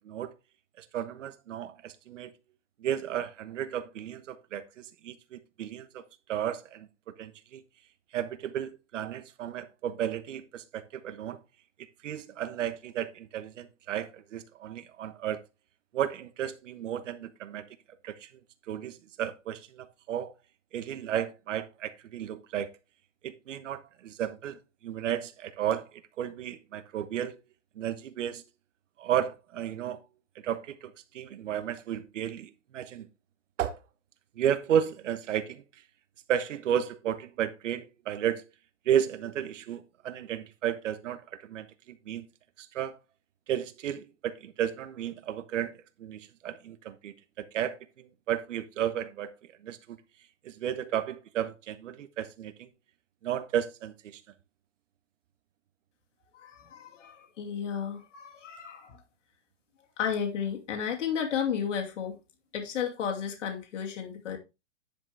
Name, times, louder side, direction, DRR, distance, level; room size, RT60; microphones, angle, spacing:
voice 1, 0.8-2.3 2.8-6.0 6.3-7.6 8.1-11.4 12.0-15.4 15.9-17.6 18.0-18.3 18.7-20.3 20.7-22.7 23.2-27.4 27.7-28.4 29.0-30.0 30.4-33.1 33.6-33.8 34.4-35.6 36.3-38.4 38.8-42.3 42.6-43.0 43.5-49.3 49.6-50.0 50.4-52.7 53.2-54.2, right 10 dB, 75° right, 1.2 m, -33 dB
voice 2, 56.3-59.0 60.0-62.2 62.5-64.4, left 7 dB, 75° left, 2.5 m, -33 dB
10.0 x 6.3 x 3.3 m
hypercardioid pair, 160°, 37 cm